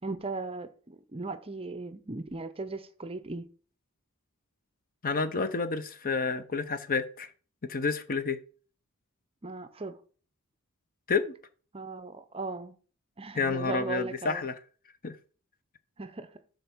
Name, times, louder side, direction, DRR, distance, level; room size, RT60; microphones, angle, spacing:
voice 1, 0.0-3.5 9.4-10.0 11.7-12.8 13.2-14.4 16.0-16.4, right 3 dB, 25° right, 0.6 m, -38 dB
voice 2, 5.0-7.3 7.6-8.4 11.1-11.3 13.3-14.5 15.0-15.2, left 4 dB, 40° left, 0.8 m, -29 dB
6.8 x 4.1 x 6.1 m
head